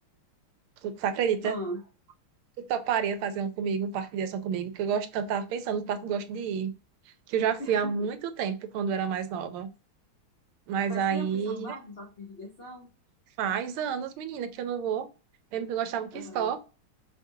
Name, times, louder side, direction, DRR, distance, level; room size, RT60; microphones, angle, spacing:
voice 1, 0.8-1.5 2.7-6.7 7.3-9.7 10.7-11.8 13.4-15.1 15.5-16.6, right 7 dB, 85° right, 11 dB, 1.5 m, -29 dB
voice 2, 1.4-1.8 7.6-7.9 10.9-12.9 16.1-16.5, equal, 85° left, 0 dB, 0.5 m, -39 dB
5.7 x 2.7 x 2.4 m, 0.33 s
omnidirectional pair, 2.3 m